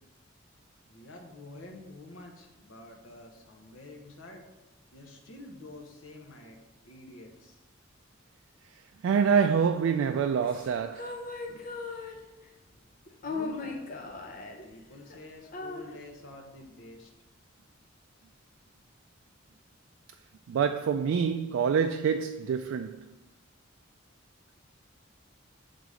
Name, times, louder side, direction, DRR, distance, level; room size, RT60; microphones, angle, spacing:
voice 1, 0.9-4.4 4.9-6.6 6.8-7.6 13.2-13.9 14.6-17.1, left 2 dB, 80° left, 1.0 m, -48 dB
voice 2, 9.0-11.2 20.5-23.0, right 6 dB, 80° right, 0.3 m, -26 dB
sound 1, 10.4-12.5 13.1-14.7 15.1-15.2 15.5-15.9, left 3 dB, 45° left, 0.7 m, -38 dB
6.6 x 4.0 x 4.9 m
head